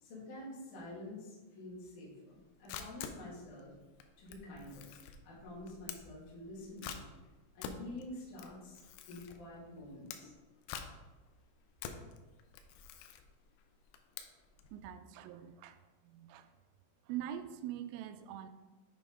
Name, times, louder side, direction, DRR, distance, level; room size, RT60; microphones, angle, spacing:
voice 1, 0.0-3.7 4.2-4.9 5.2-7.0 7.5-8.8 9.1-10.3, left 1 dB, 50° left, -6 dB, 2.7 m, -48 dB
Camera, 2.3-14.7, left 8 dB, 80° left, 2.9 m, -48 dB
voice 2, 14.7-15.8 16.0-16.5 17.1-18.5, right 11 dB, 85° right, 10 dB, 3.1 m, -43 dB
8.3 x 3.9 x 4.9 m, 1.2 s
omnidirectional pair, 5.7 m